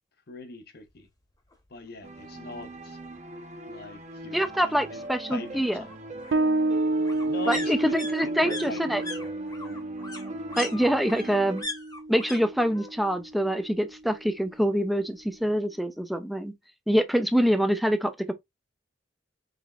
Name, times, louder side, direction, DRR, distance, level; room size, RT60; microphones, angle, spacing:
voice 1, 0.3-1.1 1.7-3.0 3.7-5.9 7.1-9.1, left 2 dB, 55° left, 0.8 m, -42 dB
sound 1, 1.5-1.6 2.0-2.1 2.3-3.3 4.6-12.4 12.7-13.2 13.5-14.5 14.8-14.9, left 2 dB, 20° left, 0.9 m, -40 dB
sound 2, 2.0-11.6, right 2 dB, 40° right, 0.8 m, -41 dB
voice 2, 4.3-5.8 7.5-9.0 10.6-11.6 12.1-16.5 16.9-18.3, equal, ahead, 0.4 m, -25 dB
Bass guitar, 6.3-13.5, right 2 dB, 75° right, 0.5 m, -30 dB
5.0 x 3.3 x 2.4 m
head